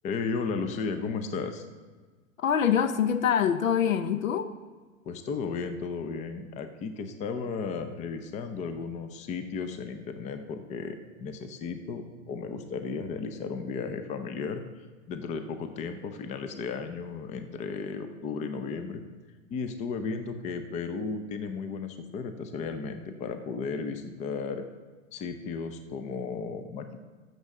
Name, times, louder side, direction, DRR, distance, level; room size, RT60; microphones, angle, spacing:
voice 1, 0.0-1.6 5.1-14.6 15.1-19.0 19.5-24.6 25.1-27.1, left 5 dB, 20° left, 8 dB, 0.6 m, -34 dB
voice 2, 2.4-4.5, left 8 dB, 75° left, 11 dB, 0.8 m, -25 dB
14.0 x 6.7 x 3.7 m, 1.4 s
hypercardioid pair, 115°, 40 cm